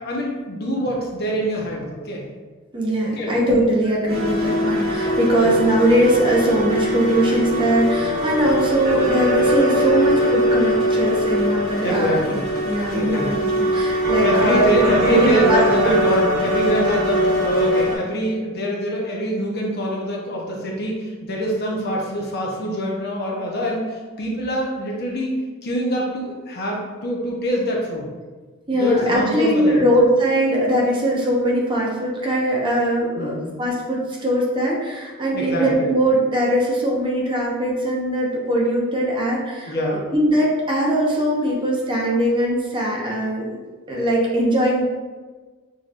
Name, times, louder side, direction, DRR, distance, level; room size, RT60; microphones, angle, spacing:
voice 1, 0.0-2.2 3.2-3.3 5.0-5.1 5.4-5.5 11.8-12.4 13.0-13.4 14.2-25.4 25.6-28.1 28.7-29.9 33.2-33.5 35.3-35.8 39.7-40.0, equal, 45° left, -2 dB, 0.8 m, -24 dB
voice 2, 2.7-12.4 12.6-16.1 16.8-17.0 28.7-43.4 43.9-44.9, right 1 dB, 20° right, -4 dB, 0.7 m, -21 dB
sound 1, 4.1-17.9, equal, 45° right, 1.5 m, -21 dB
6.3 x 2.9 x 2.5 m, 1.4 s
head